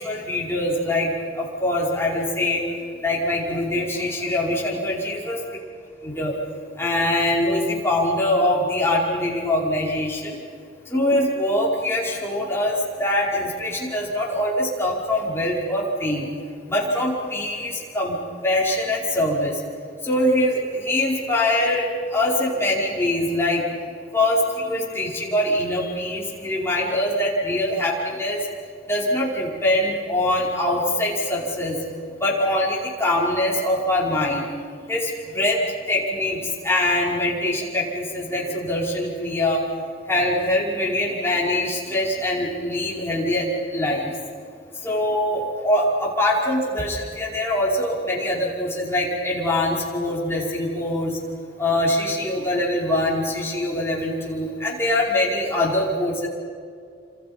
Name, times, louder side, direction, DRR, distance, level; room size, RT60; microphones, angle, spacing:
voice 1, 0.0-2.6 3.0-5.4 6.0-6.3 6.8-10.4 10.9-16.3 16.7-18.2 18.4-19.6 20.0-23.6 24.1-28.5 28.9-31.8 32.2-34.5 34.9-35.6 35.9-39.6 40.1-44.2 44.8-51.2 51.6-56.3, left 1 dB, 15° left, -5 dB, 5.4 m, -23 dB
29.0 x 27.0 x 5.4 m, 2.3 s
head